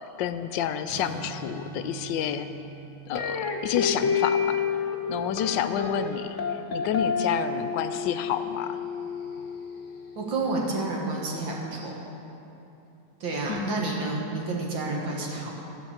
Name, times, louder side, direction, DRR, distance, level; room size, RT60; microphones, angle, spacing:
voice 1, 0.0-2.5 3.1-8.8 13.5-13.9, left 9 dB, 75° left, 10 dB, 1.1 m, -30 dB
Strum, 0.9-6.5, right 5 dB, 15° right, 1.3 m, -45 dB
sound 1, 3.2-10.2, left 5 dB, 55° left, 0.9 m, -30 dB
voice 2, 10.2-11.9 13.2-15.5, right 3 dB, 70° right, -2 dB, 2.3 m, -30 dB
14.5 x 5.2 x 7.2 m, 2.9 s
omnidirectional pair, 2.2 m